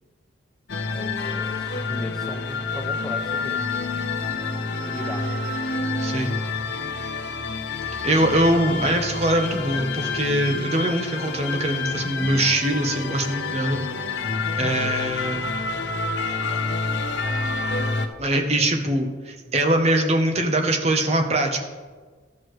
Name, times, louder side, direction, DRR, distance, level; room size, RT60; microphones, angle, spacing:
sound 1, 0.7-18.1, left 4 dB, 65° left, 0.7 m, -28 dB
voice 1, 0.9-3.8 4.5-5.3 14.6-15.0, equal, ahead, 1 dB, 0.4 m, -37 dB
voice 2, 6.0-6.4 8.0-13.8 14.6-15.4 18.2-21.6, right 1 dB, 35° right, 4 dB, 0.8 m, -22 dB
13.5 x 6.5 x 3.2 m, 1.4 s
head